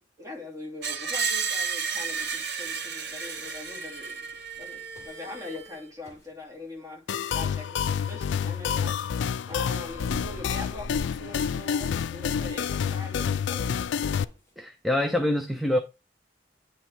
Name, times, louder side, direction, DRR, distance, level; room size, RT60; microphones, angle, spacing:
voice 1, 0.0-4.3 4.6-9.1 9.5-14.2, left 2 dB, 15° right, 2.6 m, -42 dB
Screech, 0.8-5.8, right 5 dB, 60° right, 1.0 m, -32 dB
sound 1, 4.5-5.1 5.5-5.7 6.0-6.3 7.8-7.9 9.5-13.9 14.2-14.5, equal, 15° left, 2.2 m, -45 dB
sound 2, 7.1-14.2, left 7 dB, 70° left, 0.3 m, -28 dB
voice 2, 14.6-15.8, left 1 dB, ahead, 0.5 m, -25 dB
9.5 x 3.4 x 4.4 m
head